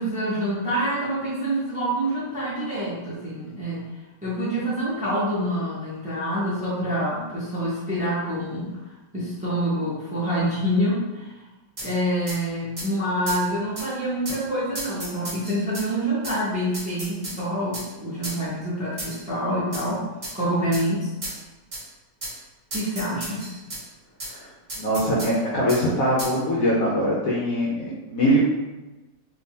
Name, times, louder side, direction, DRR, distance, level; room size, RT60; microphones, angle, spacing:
voice 1, 0.0-3.8 4.2-8.7 9.1-11.3 11.8-20.0 20.3-21.1 22.7-23.5, equal, 5° right, -9 dB, 0.8 m, -26 dB
sound 1, 11.8-11.9 12.3-12.4 12.8-12.9 13.3-13.4 13.8-13.9 14.3-14.4 14.8-15.9 16.2-16.4 16.7-17.4 17.7-17.9 18.2-18.4 19.0-19.3 19.7-19.9 20.2-20.4 20.7-20.9 21.2-21.4 21.7-21.8 22.2-22.4 22.7-23.8 24.2-24.3 24.7-25.3 25.7-25.8 26.2-26.4, right 1 dB, 40° right, 1.2 m, -34 dB
voice 2, 24.8-28.4, equal, 60° left, -5 dB, 1.0 m, -22 dB
3.4 x 3.4 x 2.7 m, 1.1 s
omnidirectional pair, 1.9 m